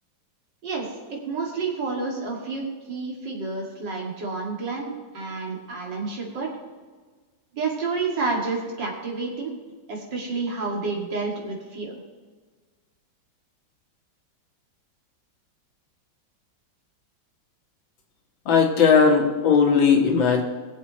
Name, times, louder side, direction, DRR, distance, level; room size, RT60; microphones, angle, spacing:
voice 1, 0.6-6.5 7.5-9.5 9.9-12.0, right 4 dB, 65° right, -2 dB, 3.1 m, -29 dB
voice 2, 18.5-20.4, left 6 dB, 90° left, 1 dB, 2.4 m, -18 dB
22.0 x 7.4 x 3.2 m, 1.4 s
omnidirectional pair, 2.1 m